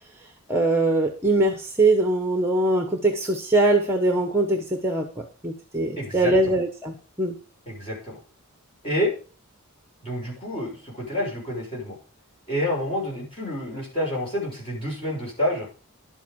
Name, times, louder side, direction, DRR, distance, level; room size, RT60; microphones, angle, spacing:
voice 1, 0.5-7.4, right 2 dB, 10° right, 4 dB, 1.2 m, -22 dB
voice 2, 6.0-6.6 7.7-8.2 8.8-9.1 10.0-12.0 12.5-15.7, left 1 dB, 25° left, -3 dB, 6.7 m, -28 dB
11.5 x 8.4 x 5.3 m, 0.37 s
head